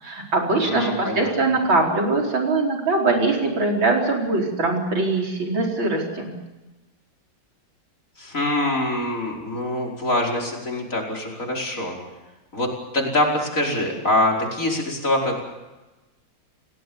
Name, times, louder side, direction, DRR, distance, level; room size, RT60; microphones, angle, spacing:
voice 1, 0.0-6.3, right 3 dB, 85° right, 0 dB, 5.4 m, -22 dB
voice 2, 0.6-1.3 8.2-12.0 12.5-15.4, left 1 dB, 40° left, -1 dB, 5.6 m, -24 dB
30.0 x 18.5 x 7.2 m, 1.1 s
omnidirectional pair, 2.1 m